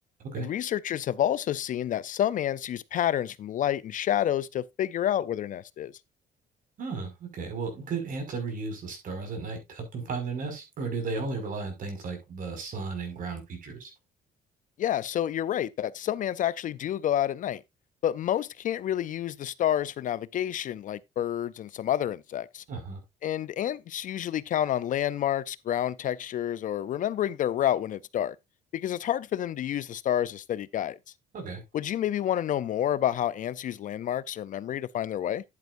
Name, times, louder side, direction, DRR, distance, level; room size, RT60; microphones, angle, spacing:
voice 1, 0.4-5.9 14.8-17.6 18.0-22.6 23.2-28.4 28.7-31.0 31.7-35.4, left 11 dB, 50° left, 0.5 m, -29 dB
voice 2, 6.8-13.9 22.7-23.0 31.3-31.6, right 4 dB, 55° right, 5.4 m, -34 dB
10.5 x 9.0 x 2.6 m
cardioid pair, 110°, 17 cm